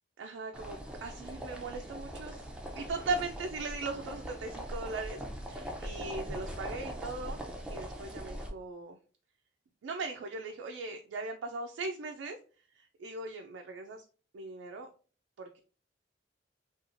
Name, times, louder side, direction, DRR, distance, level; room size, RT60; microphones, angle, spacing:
voice 1, 0.2-2.5 2.7-7.4 7.7-9.0 9.8-12.4 12.7-14.0 14.3-14.9 15.4-15.6, right 3 dB, 85° right, 3 dB, 0.3 m, -39 dB
sound 1, 0.5-8.5, equal, 5° right, 0.4 m, -41 dB
2.9 x 2.3 x 2.5 m, 0.40 s
head